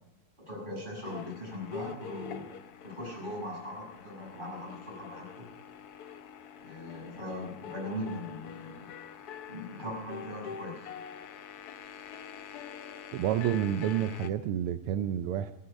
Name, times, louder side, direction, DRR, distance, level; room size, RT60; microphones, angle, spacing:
voice 1, 0.5-2.5 2.8-5.5 6.6-8.9 9.5-10.9, left 1 dB, 20° right, -3 dB, 6.1 m, -40 dB
sound 1, 1.0-14.3, left 8 dB, 70° left, 0.9 m, -45 dB
voice 2, 13.1-15.5, right 10 dB, 85° right, 11 dB, 1.5 m, -29 dB
15.5 x 11.5 x 5.2 m, 0.99 s
omnidirectional pair, 2.4 m